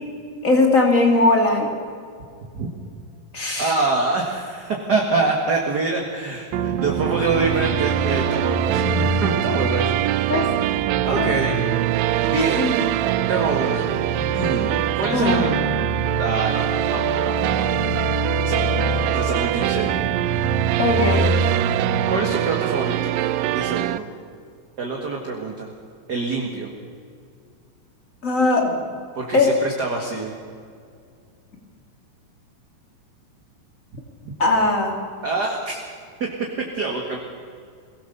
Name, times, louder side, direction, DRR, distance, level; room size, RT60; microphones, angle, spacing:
voice 1, 0.4-1.7 3.3-3.8 10.3-10.5 11.2-11.3 12.6-12.7 15.1-15.4 20.8-21.3 28.2-28.9 29.3-29.5 34.4-34.9, left 2 dB, 25° left, 1 dB, 2.6 m, -19 dB
voice 2, 3.6-10.4 11.0-11.6 12.3-12.7 13.3-13.9 14.3-15.6 16.2-18.0 18.4-19.9 22.1-23.2 23.5-24.1 24.8-25.7 26.1-26.7 29.2-30.4 34.2-34.3 35.2-35.8 36.2-36.3 36.7-37.2, right 3 dB, 35° right, 0 dB, 1.9 m, -25 dB
sound 1, 6.5-21.7, left 1 dB, 65° left, 7.0 m, -29 dB
sound 2, 6.5-24.0, right 14 dB, 85° right, 1.6 m, -23 dB
23.5 x 17.5 x 6.9 m, 2.2 s
omnidirectional pair, 3.9 m